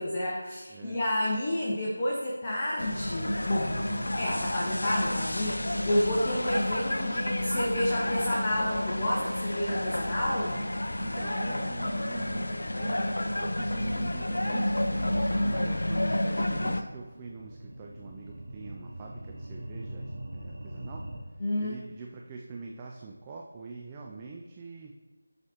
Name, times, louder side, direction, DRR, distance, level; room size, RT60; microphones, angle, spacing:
voice 1, 0.0-3.7 4.2-10.6 21.4-21.8, left 1 dB, 25° left, -4 dB, 0.8 m, -30 dB
voice 2, 0.7-1.0 3.7-4.1 11.0-13.1 13.4-24.9, right 4 dB, 15° right, -1 dB, 0.4 m, -44 dB
sound 1, 2.8-16.8, left 1 dB, 65° left, 0.5 m, -30 dB
sound 2, 16.2-21.2, right 1 dB, 50° right, 2.2 m, -43 dB
12.0 x 4.1 x 3.0 m, 1.2 s
figure-of-eight pair, 165°, 0 cm